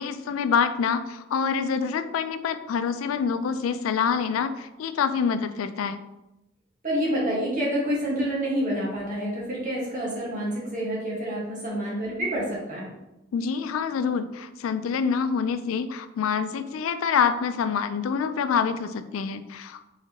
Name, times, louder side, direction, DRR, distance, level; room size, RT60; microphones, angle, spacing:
voice 1, 0.0-6.0 13.3-19.8, left 6 dB, 85° left, 11 dB, 0.3 m, -26 dB
voice 2, 6.8-12.9, equal, 40° right, -5 dB, 1.6 m, -28 dB
4.3 x 3.8 x 2.9 m, 0.94 s
head